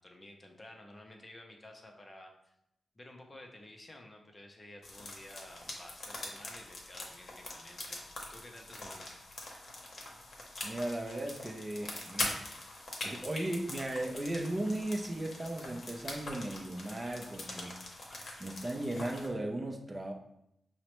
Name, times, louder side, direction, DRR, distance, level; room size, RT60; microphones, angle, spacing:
voice 1, 0.0-2.5 3.0-9.1, left 1 dB, 25° left, 2 dB, 0.6 m, -52 dB
sound 1, 4.8-19.3, left 2 dB, 55° left, 0.8 m, -43 dB
voice 2, 10.6-12.5 13.0-17.8 18.4-20.1, right 1 dB, 25° right, 2 dB, 0.5 m, -36 dB
5.4 x 2.1 x 3.0 m, 0.79 s
cardioid pair, 95°, 0 cm